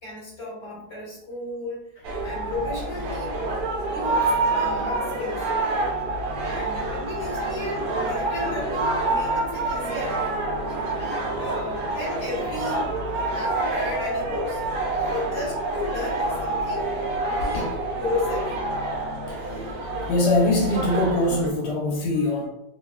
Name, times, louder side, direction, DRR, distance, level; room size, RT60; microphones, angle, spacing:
voice 1, 0.0-1.9 2.2-3.4 3.9-5.5 6.4-10.2 11.0-12.8 13.2-14.6 15.0-16.9 17.2-18.5, left 2 dB, 20° left, -6 dB, 0.9 m, -34 dB
sound 1, 2.0-21.5, right 2 dB, 85° right, 1.2 m, -27 dB
sound 2, 2.4-20.0, left 5 dB, 60° left, 0.9 m, -43 dB
voice 2, 19.3-22.5, left 2 dB, 85° left, -2 dB, 1.2 m, -24 dB
3.0 x 2.2 x 2.3 m, 0.82 s
omnidirectional pair, 1.7 m